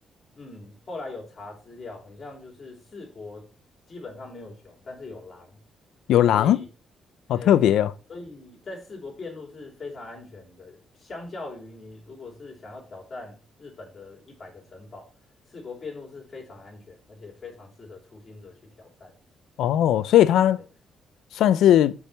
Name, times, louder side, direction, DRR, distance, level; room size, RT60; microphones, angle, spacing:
voice 1, 0.3-3.4 3.9-5.6 6.3-6.6 7.3-7.6 8.1-15.1 15.5-19.1, left 3 dB, 40° left, 3.2 m, -41 dB
voice 2, 6.1-6.6 7.3-7.9 19.6-20.6 21.3-21.9, left 11 dB, 80° left, 0.5 m, -18 dB
5.2 x 4.7 x 5.5 m
cardioid pair, 90°, 0 cm